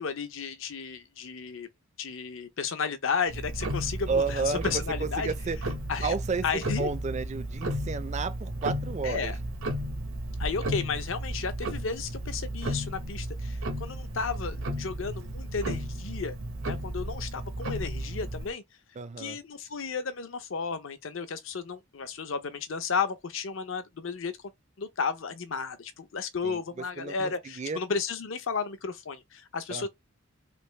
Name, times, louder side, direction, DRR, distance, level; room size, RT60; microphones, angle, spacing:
voice 1, 0.0-1.7 2.0-5.3 5.9-6.2 6.4-6.9 9.0-9.4 10.4-16.4 16.7-18.6 19.2-24.3 24.8-29.9, left 5 dB, 70° left, 0.6 m, -33 dB
Tick-tock, 3.3-18.5, right 1 dB, 75° right, 0.8 m, -34 dB
voice 2, 4.1-5.6 6.0-6.4 6.8-9.3 19.0-19.4 26.4-26.6 27.0-27.8 29.7-29.9, right 4 dB, 35° right, 0.4 m, -32 dB
3.3 x 2.6 x 3.1 m
head